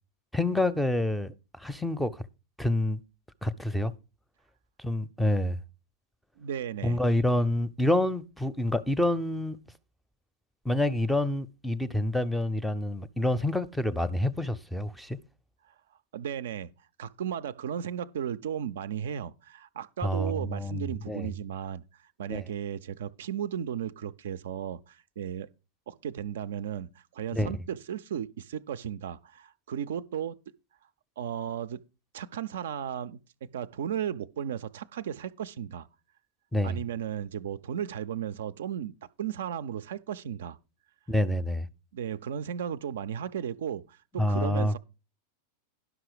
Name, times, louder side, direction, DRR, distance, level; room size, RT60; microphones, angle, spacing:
voice 1, 0.3-2.1 2.6-3.0 3.4-3.9 4.8-5.6 6.8-9.6 10.6-15.2 20.0-21.3 22.3-22.4 27.3-27.5 36.5-36.8 41.1-41.7 44.2-44.8, left 1 dB, 5° left, 0.5 m, -27 dB
voice 2, 6.4-7.0 16.1-16.7 17.0-21.8 22.2-25.5 25.9-30.4 31.2-31.8 32.1-35.9 36.6-40.6 41.9-44.8, right 9 dB, 60° right, 0.4 m, -35 dB
11.0 x 6.0 x 4.8 m
figure-of-eight pair, 90°, 0 cm